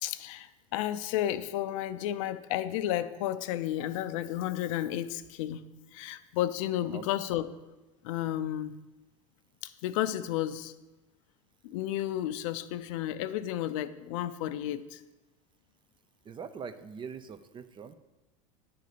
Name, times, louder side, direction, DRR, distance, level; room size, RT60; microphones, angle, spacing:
voice 1, 0.0-5.6 5.9-7.5 8.0-8.7 9.8-10.7 11.6-15.0, left 12 dB, 70° left, 13 dB, 0.5 m, -32 dB
voice 2, 16.3-17.9, right 6 dB, 30° right, 11 dB, 0.5 m, -42 dB
9.5 x 3.9 x 5.0 m, 1.1 s
supercardioid pair, 100°, 17 cm